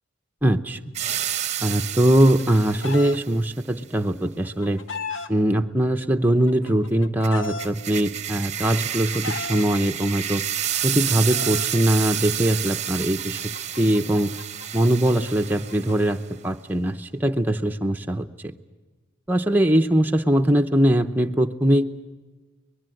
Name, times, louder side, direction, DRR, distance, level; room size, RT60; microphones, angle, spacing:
voice 1, 0.4-0.8 1.6-4.8 5.3-10.4 10.8-13.4 13.8-14.4 14.7-18.3 19.3-21.8, right 1 dB, 10° right, 5 dB, 0.8 m, -21 dB
sound 1, 1.0-3.3 7.2-16.2, right 10 dB, 35° right, 0.8 m, -30 dB
Chicken rooster, 2.0-3.2 4.2-5.3 6.3-7.7 8.6-9.6 10.6-11.7 12.8-16.1, left 3 dB, 80° left, 1.3 m, -36 dB
25.0 x 20.5 x 7.8 m, 1.3 s
head